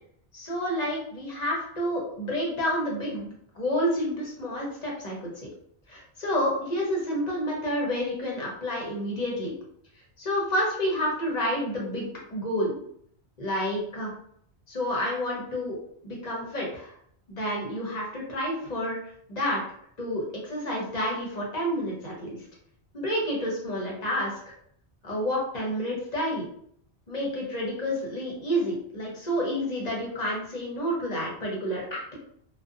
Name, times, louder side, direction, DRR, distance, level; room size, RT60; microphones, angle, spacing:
voice 1, 0.3-5.5 5.9-9.5 10.2-12.7 13.4-14.1 14.7-15.8 16.0-16.9 17.3-19.0 19.3-19.6 20.0-22.4 22.9-24.3 25.0-26.5 27.1-32.2, equal, 45° left, -3 dB, 0.8 m, -29 dB
2.5 x 2.2 x 2.4 m, 0.65 s
omnidirectional pair, 1.1 m